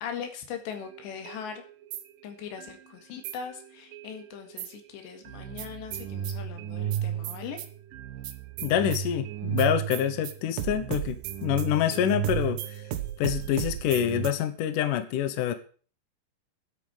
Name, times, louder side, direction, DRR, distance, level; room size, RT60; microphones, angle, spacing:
voice 1, 0.0-1.6 2.2-7.6, left 7 dB, 85° left, 6 dB, 4.1 m, -40 dB
sound 1, 0.7-2.8 3.2-4.8 5.2-14.3, right 10 dB, 70° right, 2.2 m, -34 dB
voice 2, 8.6-12.8 13.2-15.5, left 10 dB, 70° left, 10 dB, 2.1 m, -26 dB
9.9 x 8.4 x 9.0 m, 0.41 s
omnidirectional pair, 4.9 m